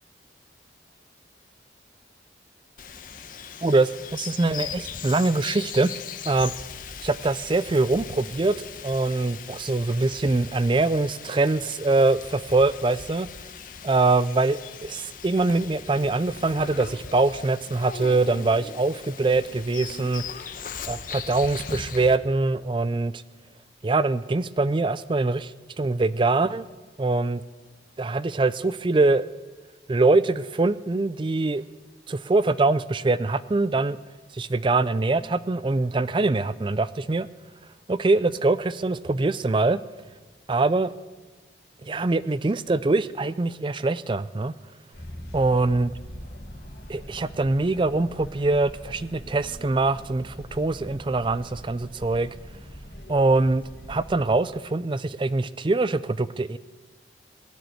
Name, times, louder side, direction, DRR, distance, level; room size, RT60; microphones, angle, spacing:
Bird vocalization bird call bird song, 2.8-22.2, left 6 dB, 50° left, 1.0 m, -39 dB
voice 1, 3.6-6.0 6.3-6.5 7.0-8.6 8.8-13.3 13.8-20.2 20.9-23.2 23.8-25.5 25.8-26.7 27.0-27.4 28.0-29.3 29.9-31.6 32.1-34.0 34.3-37.3 37.9-39.8 40.5-40.9 41.8-44.5 45.3-45.9 46.9-52.3 53.1-53.6 53.9-56.6, right 3 dB, 25° right, 17 dB, 0.4 m, -23 dB
sound 1, 44.9-54.3, equal, 65° left, 3.3 m, -42 dB
18.0 x 9.7 x 7.8 m, 1.3 s
head